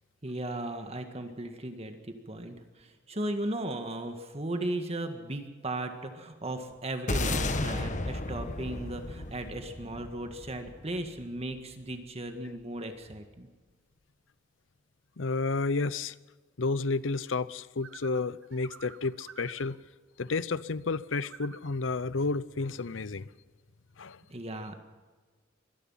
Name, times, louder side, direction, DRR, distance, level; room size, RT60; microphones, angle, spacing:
voice 1, 0.2-13.5 24.3-24.8, right 1 dB, 35° right, 6 dB, 1.8 m, -36 dB
sound 1, 7.1-11.5, left 2 dB, 40° left, 1.5 m, -33 dB
voice 2, 15.2-16.1 16.6-19.8 20.2-23.3 24.0-24.2, left 3 dB, 85° left, 18 dB, 0.8 m, -31 dB
sound 2, 17.8-19.8 21.1-21.7, right 6 dB, 80° right, 1.8 m, -49 dB
24.5 x 18.5 x 5.8 m, 1.4 s
head